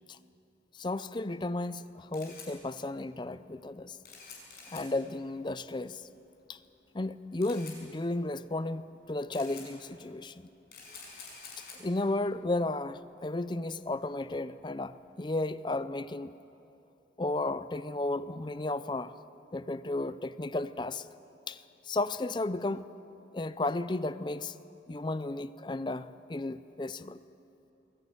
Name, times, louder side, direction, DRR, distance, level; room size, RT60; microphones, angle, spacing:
voice 1, 0.7-4.0 4.7-6.1 6.5-6.6 6.9-10.5 11.6-16.3 17.2-19.1 19.5-21.1 21.5-22.9 23.3-24.5 24.9-27.2, left 2 dB, 25° left, 15 dB, 0.5 m, -34 dB
Camera, 1.8-15.1, left 5 dB, 55° left, 5.7 m, -52 dB
22.0 x 15.0 x 9.1 m, 2.8 s
head